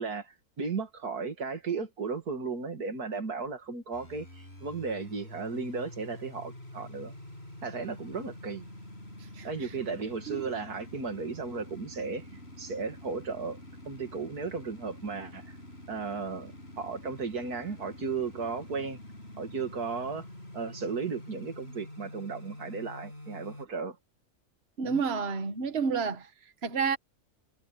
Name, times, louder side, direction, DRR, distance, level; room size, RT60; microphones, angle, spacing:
voice 1, 0.0-7.1 7.6-8.7 9.4-13.6 13.9-15.6 15.9-19.0 19.4-20.3 20.5-24.0 24.8-25.0, right 4 dB, 85° right, 2.7 m, -35 dB
sound 1, 3.9-23.7, left 1 dB, 45° left, 7.8 m, -47 dB
voice 2, 24.8-26.3 26.6-27.0, right 5 dB, 45° right, 1.8 m, -29 dB
omnidirectional pair, 1.6 m